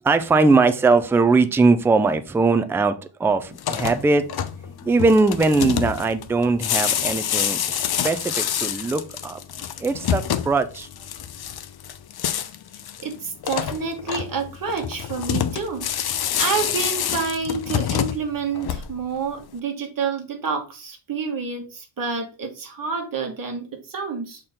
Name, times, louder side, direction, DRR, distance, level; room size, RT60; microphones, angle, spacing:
voice 1, 0.0-4.2 4.8-9.4 9.8-10.9, right 3 dB, 5° right, 10 dB, 0.3 m, -20 dB
sound 1, 3.5-19.2, left 9 dB, 55° left, 0.6 m, -27 dB
voice 2, 13.0-24.4, right 5 dB, 45° right, 3 dB, 1.6 m, -29 dB
6.5 x 4.4 x 3.7 m, 0.34 s
wide cardioid pair, 150°, 46 cm